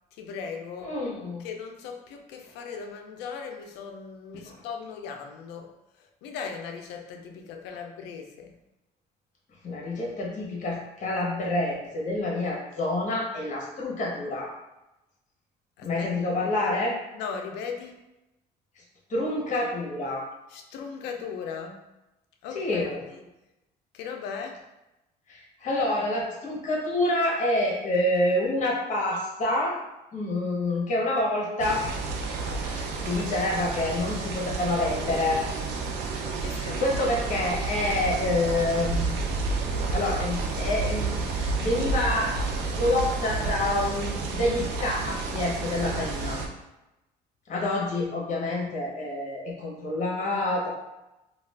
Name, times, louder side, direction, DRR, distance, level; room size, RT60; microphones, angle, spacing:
voice 1, 0.1-1.1 1.4-8.5 15.8-16.1 17.1-18.0 20.5-21.8 22.4-23.2 23.9-24.6 36.4-36.8, left 6 dB, 90° left, 4 dB, 0.4 m, -38 dB
voice 2, 0.8-1.4 4.4-4.6 9.6-14.5 15.8-17.0 19.1-20.3 22.5-23.0 25.3-29.8 30.1-31.9 32.6-35.4 36.4-39.2 39.9-42.3 42.8-46.4 47.5-50.7, left 2 dB, 45° left, -3 dB, 0.9 m, -27 dB
sound 1, 31.6-46.5, right 4 dB, 80° right, 0.5 m, -30 dB
2.4 x 2.3 x 3.3 m, 0.97 s
cardioid pair, 110°, 17 cm